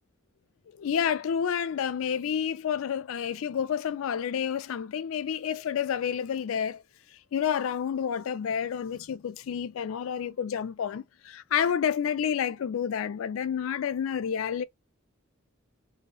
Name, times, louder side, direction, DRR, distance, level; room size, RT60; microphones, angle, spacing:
voice 1, 0.8-6.8 7.3-14.6, left 8 dB, 80° left, 0.3 m, -29 dB
2.7 x 2.0 x 2.3 m
head